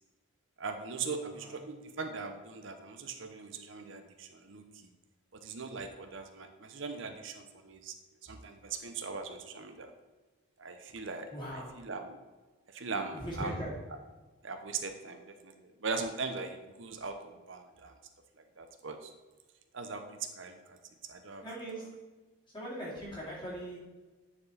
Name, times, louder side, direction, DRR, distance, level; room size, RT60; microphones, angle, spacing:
voice 1, 0.6-4.6 5.3-7.9 8.2-9.9 10.6-12.2 12.7-13.7 14.4-15.5 15.8-17.9 18.4-19.1 19.7-20.8 21.1-21.4, right 4 dB, 55° right, 6 dB, 0.7 m, -40 dB
voice 2, 11.3-11.8 13.1-13.8 21.4-21.9 22.5-23.8, right 1 dB, 20° left, -6 dB, 2.4 m, -39 dB
9.7 x 4.4 x 4.1 m, 1.2 s
head